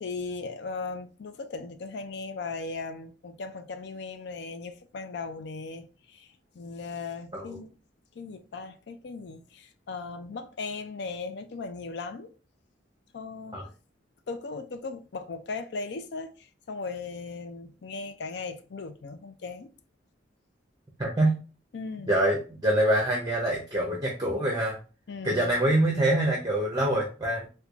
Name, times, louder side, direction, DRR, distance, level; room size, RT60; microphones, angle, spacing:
voice 1, 0.0-7.7 8.1-12.3 13.1-13.7 14.3-19.7 21.7-22.1 25.1-25.5, left 4 dB, 65° left, 0.4 m, -38 dB
voice 2, 21.0-21.4 22.1-24.8 25.2-27.5, right 1 dB, 20° right, 0.6 m, -25 dB
4.4 x 2.2 x 2.4 m
head